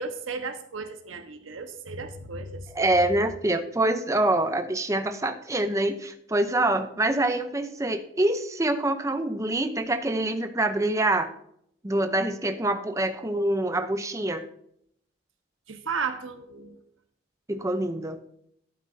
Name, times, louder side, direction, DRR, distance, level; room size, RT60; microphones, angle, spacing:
voice 1, 0.0-2.7 15.7-16.8, right 4 dB, 90° right, 6 dB, 1.2 m, -34 dB
voice 2, 2.7-11.3 11.8-14.4 17.5-18.2, right 1 dB, 15° right, 7 dB, 0.7 m, -25 dB
11.5 x 8.0 x 2.7 m, 0.69 s
head